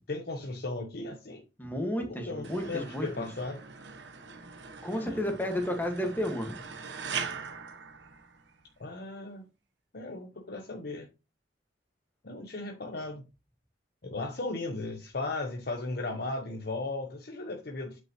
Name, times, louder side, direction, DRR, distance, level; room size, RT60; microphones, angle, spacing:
voice 1, 0.1-1.4 2.0-3.6 4.9-5.2 8.8-9.5 9.9-11.1 12.2-13.2 14.0-18.0, left 2 dB, 60° left, 1.0 m, -36 dB
voice 2, 1.6-3.1 4.8-6.6, left 1 dB, 10° left, 1.7 m, -32 dB
sound 1, 2.4-8.7, right 6 dB, 80° right, 1.0 m, -41 dB
8.8 x 5.5 x 3.0 m
head